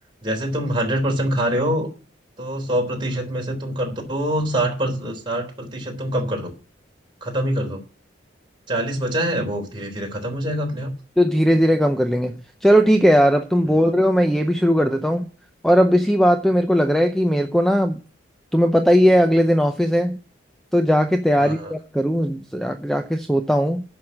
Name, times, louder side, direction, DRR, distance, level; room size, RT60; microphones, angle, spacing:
voice 1, 0.2-1.9 2.4-6.5 7.2-7.8 8.7-10.9 21.4-21.7, right 1 dB, 25° right, 0 dB, 3.5 m, -25 dB
voice 2, 11.2-15.3 15.6-18.0 18.5-20.2 20.7-23.8, equal, ahead, 7 dB, 0.6 m, -18 dB
10.5 x 6.3 x 7.4 m, 0.36 s
head